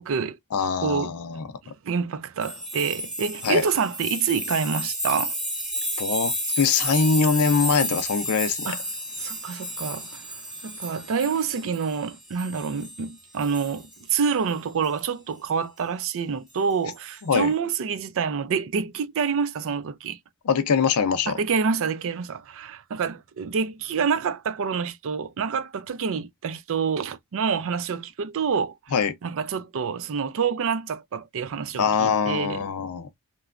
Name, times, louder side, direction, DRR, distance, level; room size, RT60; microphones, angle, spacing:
voice 1, 0.0-0.4 0.8-1.1 1.6-5.3 8.7-8.8 9.2-20.2 21.3-28.9 29.2-32.6, right 6 dB, 60° right, 0.4 m, -27 dB
voice 2, 0.5-1.4 3.4-3.6 6.0-8.8 17.2-17.5 20.4-21.4 28.9-29.1 31.8-33.1, left 5 dB, 75° left, 0.5 m, -23 dB
sound 1, 2.4-13.1 13.4-14.4 14.8-15.0 16.7-16.9, equal, 5° right, 1.0 m, -32 dB
3.0 x 2.2 x 2.4 m
head